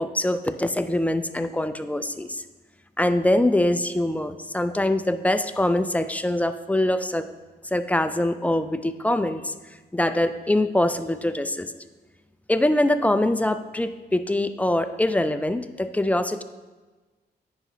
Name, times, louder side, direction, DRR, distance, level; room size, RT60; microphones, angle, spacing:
voice 1, 0.0-2.4 3.0-7.3 7.7-9.5 9.9-11.7 12.5-16.4, left 1 dB, 10° left, 10 dB, 0.3 m, -23 dB
9.4 x 5.7 x 3.0 m, 1.3 s
cardioid pair, 105°, 17 cm